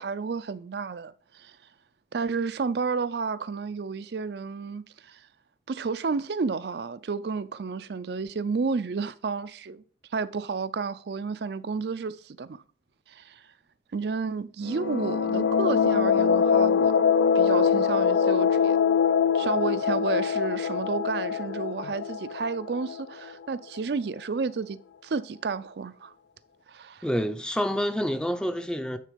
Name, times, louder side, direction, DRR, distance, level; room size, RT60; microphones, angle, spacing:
voice 1, 0.0-1.5 2.1-5.2 5.7-9.8 10.1-12.6 13.1-13.4 13.9-17.0 17.3-18.8 19.3-26.1 26.7-27.1, right 4 dB, 65° right, 0.4 m, -31 dB
sound 1, 14.6-23.2, left 6 dB, 85° left, 0.4 m, -23 dB
voice 2, 27.0-29.0, equal, 5° left, 0.5 m, -28 dB
9.3 x 3.9 x 5.1 m
head